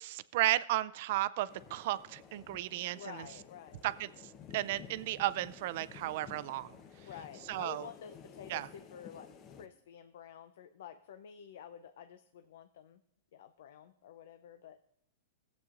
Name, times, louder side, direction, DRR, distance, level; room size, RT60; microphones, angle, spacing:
voice 1, 0.0-3.0 3.8-4.1 4.5-6.7 7.5-7.8 8.5-8.7, right 15 dB, 55° right, 17 dB, 0.4 m, -33 dB
sound 1, 1.5-9.7, left 7 dB, 30° left, 0.8 m, -53 dB
voice 2, 2.9-3.8 7.0-13.0 13.3-14.8, left 8 dB, 70° left, 9 dB, 0.5 m, -50 dB
16.5 x 8.1 x 2.5 m, 0.76 s
hypercardioid pair, 140°, 0 cm